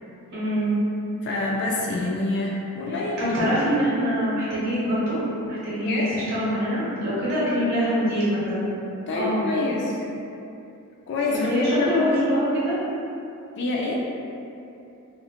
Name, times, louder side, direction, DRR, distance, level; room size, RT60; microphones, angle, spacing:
voice 1, 0.3-0.7 3.2-5.2 5.4-8.6 9.2-9.4 11.3-12.8, equal, 45° right, -10 dB, 0.7 m, -24 dB
voice 2, 1.2-3.5 5.7-6.2 9.1-10.1 11.1-12.3 13.6-14.0, left 2 dB, 50° left, -3 dB, 0.3 m, -27 dB
2.5 x 2.0 x 2.8 m, 2.7 s
head